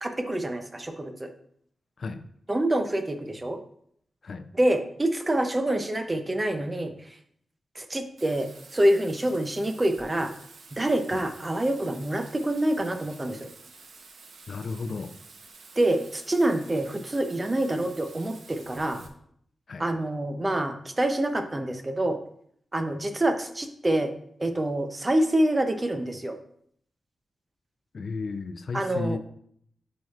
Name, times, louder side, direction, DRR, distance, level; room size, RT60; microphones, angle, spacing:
voice 1, 0.0-1.3 2.5-3.6 4.5-6.9 7.8-10.3 10.7-13.5 15.8-19.0 19.8-22.2 22.7-24.1 24.4-26.4 28.7-29.2, right 1 dB, 20° right, 7 dB, 0.5 m, -26 dB
Bathtub (filling or washing), 8.2-19.1, right 4 dB, 80° right, 0.8 m, -50 dB
voice 2, 14.5-15.2 19.7-19.9 27.9-29.2, left 4 dB, 50° left, 10 dB, 0.4 m, -33 dB
8.5 x 4.7 x 2.4 m, 0.67 s
wide cardioid pair, 125°, 0 cm